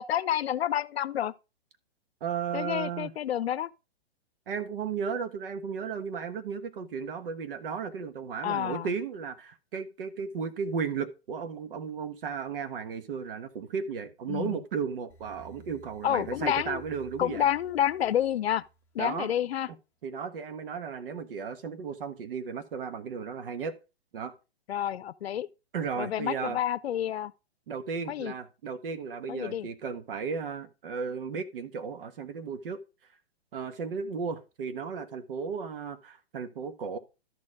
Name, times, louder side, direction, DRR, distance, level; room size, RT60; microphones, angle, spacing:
voice 1, 0.0-1.3 2.5-3.7 8.4-8.9 14.3-14.6 16.0-16.8 17.2-18.6 18.9-19.7 24.7-25.5 26.0-27.3 28.1-28.3 29.3-29.7, left 10 dB, 75° left, 0.6 m, -29 dB
voice 2, 2.2-3.1 4.5-17.5 19.0-19.3 20.0-23.8 24.1-24.3 25.7-26.6 27.7-32.8 33.5-37.0, right 6 dB, 60° right, 1.5 m, -35 dB
sound 1, 15.1-19.2, right 2 dB, 5° left, 1.4 m, -53 dB
13.0 x 4.4 x 4.8 m
hypercardioid pair, 150°, 32 cm